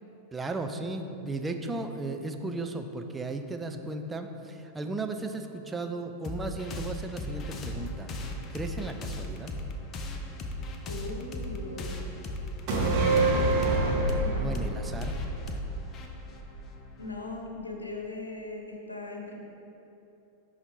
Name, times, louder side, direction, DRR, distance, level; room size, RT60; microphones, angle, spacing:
voice 1, 0.3-8.1 8.5-9.6 14.4-15.2, right 2 dB, 15° right, 6 dB, 0.5 m, -35 dB
sound 1, 6.2-17.3, left 1 dB, 30° left, 0.7 m, -37 dB
voice 2, 10.9-12.0 14.2-14.5 17.0-19.4, left 2 dB, 80° left, 1 dB, 1.0 m, -39 dB
sound 2, 12.7-16.3 16.6-16.7, right 2 dB, 40° right, 1.5 m, -26 dB
11.0 x 4.0 x 4.5 m, 2.9 s
figure-of-eight pair, 90°, 0 cm